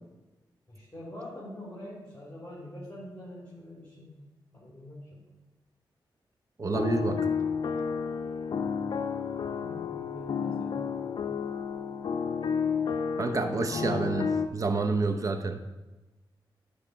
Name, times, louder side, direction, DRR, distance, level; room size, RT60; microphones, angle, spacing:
voice 1, 0.7-4.2 4.5-5.2 9.3-11.4, left 1 dB, 15° left, -8 dB, 3.0 m, -45 dB
voice 2, 6.6-7.2 13.2-15.6, right 3 dB, 40° right, 8 dB, 0.6 m, -28 dB
sound 1, 6.7-14.5, left 6 dB, 60° left, 0.5 m, -31 dB
9.9 x 4.3 x 5.1 m, 1.1 s
cardioid pair, 85°, 8 cm